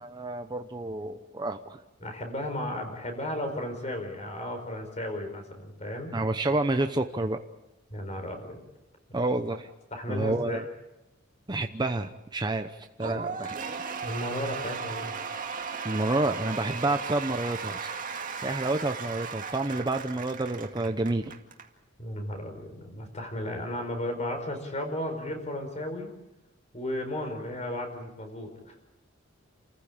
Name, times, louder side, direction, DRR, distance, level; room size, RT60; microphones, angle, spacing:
voice 1, 0.0-1.8 6.1-7.4 9.1-9.7 10.1-10.6 11.5-13.8 15.8-17.9 18.4-21.3, right 2 dB, 20° right, 6 dB, 0.8 m, -29 dB
voice 2, 2.0-6.1 7.9-8.6 9.9-10.6 13.0-13.2 14.0-15.1 22.0-26.1 26.7-28.8, left 1 dB, 35° left, 5 dB, 4.9 m, -34 dB
Cheering / Applause / Crowd, 13.0-21.7, right 5 dB, 45° right, 2.2 m, -36 dB
29.0 x 15.0 x 8.8 m, 0.95 s
head